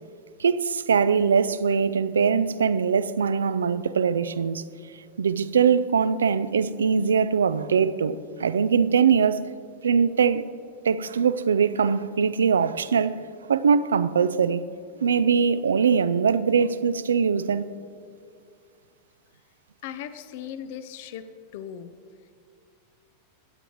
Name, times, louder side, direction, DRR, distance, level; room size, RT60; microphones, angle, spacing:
voice 1, 0.4-4.6 5.2-9.4 9.8-10.5 10.8-13.2 13.5-14.7 15.0-17.7, right 6 dB, 70° right, 0.4 m, -22 dB
voice 2, 19.8-21.3 21.5-21.9, left 9 dB, 50° left, 0.6 m, -37 dB
22.5 x 9.1 x 3.1 m
figure-of-eight pair, 90°, 0 cm